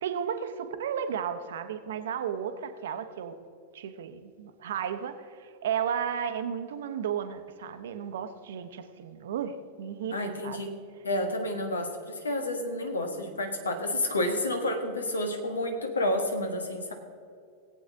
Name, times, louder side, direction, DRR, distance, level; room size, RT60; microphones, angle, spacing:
voice 1, 0.0-3.3 3.7-10.2 10.4-10.6, right 8 dB, 60° right, 9 dB, 0.9 m, -33 dB
voice 2, 10.1-10.8 11.0-16.9, left 1 dB, 75° left, 5 dB, 1.5 m, -30 dB
19.0 x 8.3 x 3.7 m, 2.3 s
figure-of-eight pair, 90°, 0 cm